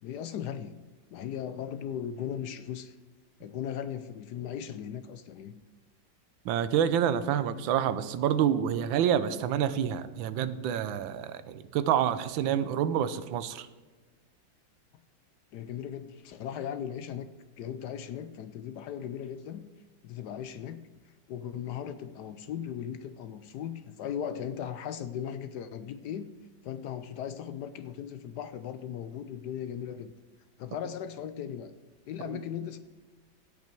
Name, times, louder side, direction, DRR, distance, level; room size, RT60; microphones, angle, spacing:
voice 1, 0.0-0.8 1.1-3.0 3.4-5.6 10.9-11.0 15.5-17.3 17.6-19.6 20.0-20.8 21.3-26.3 26.6-30.1 30.6-31.7 32.1-32.8, left 9 dB, 70° left, 12 dB, 1.0 m, -37 dB
voice 2, 6.4-13.7 32.3-32.4, right 9 dB, 85° right, 13 dB, 1.4 m, -28 dB
16.5 x 5.8 x 4.5 m, 1.3 s
omnidirectional pair, 2.1 m